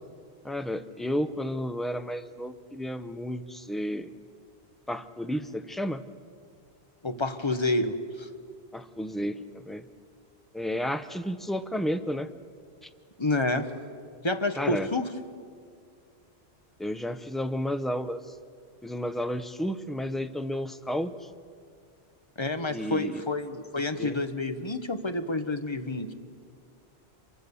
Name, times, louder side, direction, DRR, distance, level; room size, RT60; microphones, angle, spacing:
voice 1, 0.4-4.1 4.9-6.0 8.7-9.8 10.5-12.3 12.8-12.9 14.6-14.9 16.8-18.4 18.8-21.3 22.7-23.2 24.0-24.2, equal, ahead, 10 dB, 0.6 m, -32 dB
voice 2, 7.0-8.3 13.2-13.7 14.2-15.1 22.4-26.1, left 2 dB, 25° left, 8 dB, 1.1 m, -29 dB
27.0 x 24.0 x 7.0 m, 2.2 s
omnidirectional pair, 1.1 m